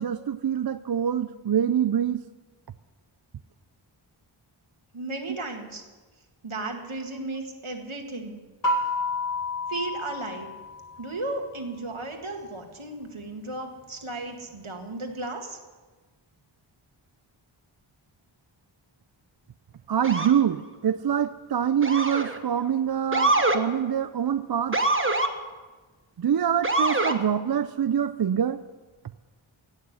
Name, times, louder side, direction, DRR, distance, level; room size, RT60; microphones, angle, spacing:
voice 1, 0.0-2.3 19.9-24.8 26.2-28.6, right 9 dB, 50° right, 0.5 m, -25 dB
voice 2, 4.9-5.8 6.4-8.4 9.7-10.5 11.0-15.6, right 2 dB, 80° right, 2.0 m, -34 dB
sound 1, 8.6-11.3, left 2 dB, 40° left, 1.5 m, -30 dB
Motor vehicle (road) / Siren, 20.0-20.4 21.8-22.4 23.1-23.6 24.7-25.3 26.6-27.2, right 2 dB, 25° right, 1.2 m, -24 dB
16.5 x 6.5 x 9.9 m
wide cardioid pair, 55°, 48 cm